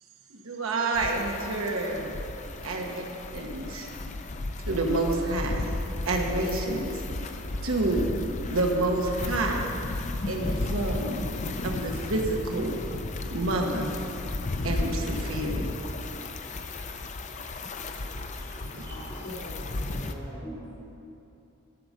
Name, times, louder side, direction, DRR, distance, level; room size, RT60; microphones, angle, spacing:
voice 1, 0.3-2.2 2.6-3.0 3.3-3.9 4.7-5.7 6.0-7.0 7.6-8.1 8.4-9.8 10.3-11.3 11.6-12.8 13.3-13.9 14.6-15.8 18.7-18.8, right 2 dB, 85° right, 0 dB, 1.2 m, -28 dB
sound 1, 0.9-20.1, left 2 dB, 35° left, 0.5 m, -34 dB
voice 2, 16.5-17.1 17.7-19.2 20.4-20.6, equal, 15° left, -5 dB, 1.0 m, -48 dB
voice 3, 18.9-20.7, equal, 75° left, -10 dB, 2.8 m, -43 dB
14.0 x 5.1 x 6.6 m, 2.9 s
head